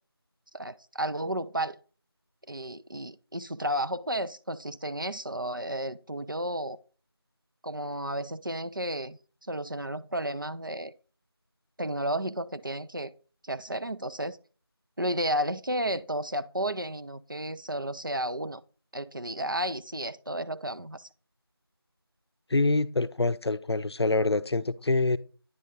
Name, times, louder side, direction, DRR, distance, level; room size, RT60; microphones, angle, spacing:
voice 1, 0.5-1.8 2.5-6.8 7.6-10.9 11.8-13.1 13.4-14.4 15.0-18.6 18.9-21.1, right 1 dB, 55° right, 0.4 m, -32 dB
voice 2, 22.5-25.2, left 2 dB, 90° left, 0.5 m, -25 dB
9.5 x 3.6 x 4.0 m
figure-of-eight pair, 180°, 13 cm